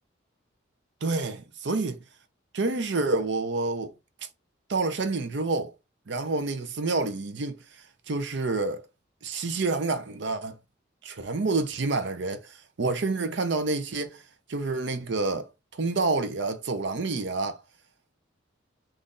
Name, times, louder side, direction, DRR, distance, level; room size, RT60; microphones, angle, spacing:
voice 1, 1.0-2.0 2.5-3.9 4.7-5.7 6.1-8.8 9.2-10.6 11.0-14.2 14.5-17.6, right 3 dB, 65° right, 0.6 m, -28 dB
3.8 x 2.6 x 3.7 m
head